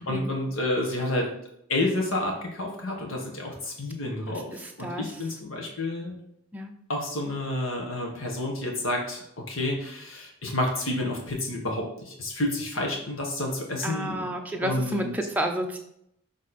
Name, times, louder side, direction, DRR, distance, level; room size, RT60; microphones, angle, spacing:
voice 1, 0.1-1.3 1.7-4.5 4.8-6.2 6.9-14.3 14.6-15.1, left 1 dB, 90° left, 0 dB, 1.6 m, -29 dB
voice 2, 4.3-5.2 6.5-6.7 13.8-15.8, right 1 dB, 10° right, 2 dB, 0.6 m, -31 dB
6.8 x 3.6 x 4.2 m, 0.74 s
head